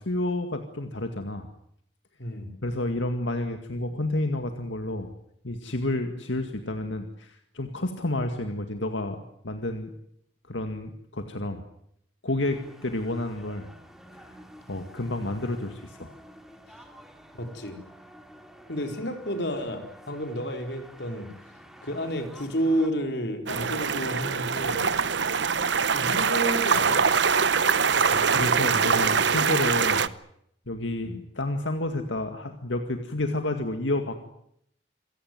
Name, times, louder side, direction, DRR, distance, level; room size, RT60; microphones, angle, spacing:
voice 1, 0.0-1.5 2.6-5.1 5.4-9.9 10.5-11.6 12.2-13.7 14.1-14.4 14.7-16.2 28.0-30.1 30.7-34.2, left 1 dB, 90° left, 6 dB, 2.1 m, -30 dB
voice 2, 2.2-2.5 17.3-17.8 18.7-21.3 21.8-24.9 25.9-27.0 31.0-31.2, equal, 65° left, 4 dB, 4.5 m, -30 dB
sound 1, 12.4-22.9, equal, ahead, 2.7 m, -50 dB
sound 2, 23.5-30.1, right 6 dB, 75° right, 0.9 m, -23 dB
27.0 x 17.0 x 9.4 m, 0.73 s
head